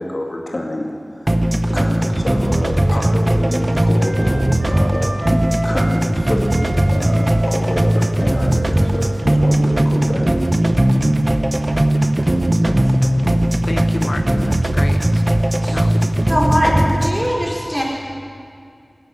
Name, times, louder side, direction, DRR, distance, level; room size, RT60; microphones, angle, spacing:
voice 1, 0.0-10.3, left 1 dB, 55° left, -1 dB, 2.2 m, -27 dB
sound 1, 1.3-17.3, right 1 dB, 35° right, 0.8 m, -17 dB
Wind instrument woodwind instrument, 1.6-6.1 6.4-10.9, right 1 dB, 60° right, 2.0 m, -33 dB
voice 2, 12.5-12.8 13.1-13.3 13.6-15.2 15.6-15.9, left 2 dB, 75° left, 7 dB, 0.6 m, -30 dB
voice 3, 16.3-17.8, equal, 10° right, -4 dB, 4.3 m, -20 dB
14.5 x 9.8 x 9.6 m, 2.2 s
wide cardioid pair, 45°, 0 cm